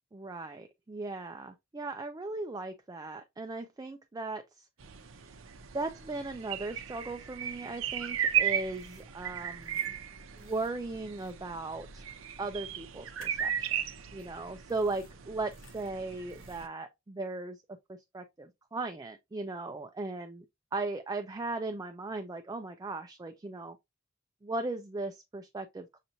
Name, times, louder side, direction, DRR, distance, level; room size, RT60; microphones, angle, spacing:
voice 1, 0.1-4.6 5.7-9.9 10.4-12.0 12.4-13.7 14.1-17.6 17.9-20.5 20.7-23.8 24.4-26.0, right 3 dB, 20° right, 0.3 m, -37 dB
sound 1, 4.8-16.7, right 9 dB, 80° right, 0.6 m, -36 dB
sound 2, 8.7-9.1 9.6-9.9 10.4-10.7 11.2-11.3 13.2-13.5 14.2-14.3 14.7-15.1 15.5-15.9 16.3-16.7, left 4 dB, 75° left, 1.5 m, -59 dB
6.5 x 2.9 x 2.6 m
head